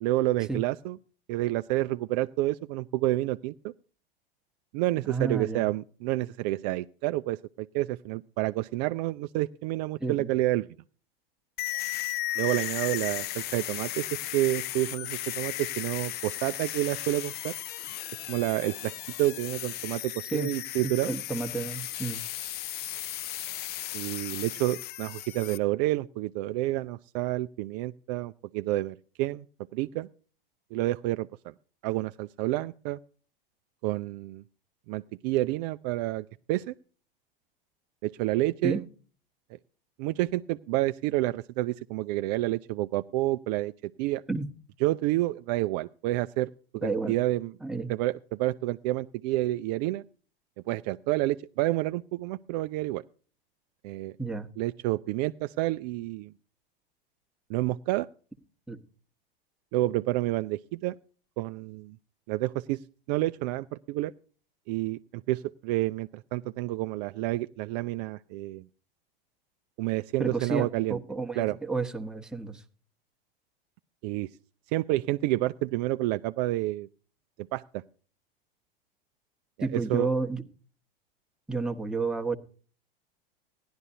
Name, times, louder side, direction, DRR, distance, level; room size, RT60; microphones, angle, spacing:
voice 1, 0.0-1.0 1.3-3.7 4.7-10.7 12.4-14.1 14.3-17.6 18.3-18.9 19.2-21.1 23.9-29.5 29.7-30.1 30.7-31.5 31.8-33.0 33.8-34.4 34.9-36.7 38.0-38.8 40.0-44.2 44.8-47.5 47.9-50.0 50.7-53.0 53.8-54.1 54.6-56.3 57.5-58.1 59.7-60.9 61.4-62.0 62.3-62.8 63.1-64.1 64.7-65.0 65.3-68.6 69.8-71.0 71.4-71.6 74.0-74.3 74.7-76.9 77.5-77.8 79.7-80.1, right 17 dB, 45° right, 12 dB, 0.4 m, -29 dB
voice 2, 5.1-5.7 10.0-10.3 20.2-20.5 20.8-22.2 38.6-38.8 44.3-44.5 46.8-47.2 47.6-47.9 54.2-54.5 58.7-58.8 70.2-72.6 79.6-80.4 81.5-82.4, right 3 dB, ahead, 5 dB, 1.0 m, -31 dB
sound 1, 11.6-25.6, left 14 dB, 35° left, 0.6 m, -35 dB
16.5 x 11.5 x 2.7 m, 0.40 s
hypercardioid pair, 90°, 29 cm